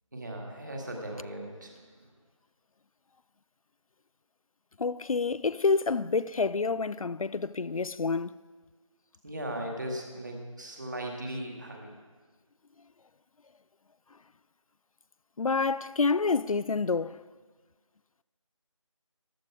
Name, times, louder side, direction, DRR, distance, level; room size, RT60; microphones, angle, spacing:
voice 1, 0.1-2.1 9.2-12.0, right 1 dB, 35° right, 1.9 m, -38 dB
voice 2, 4.8-8.3 15.4-17.2, left 4 dB, 80° left, 0.4 m, -28 dB
14.0 x 12.5 x 4.7 m
figure-of-eight pair, 175°, 17 cm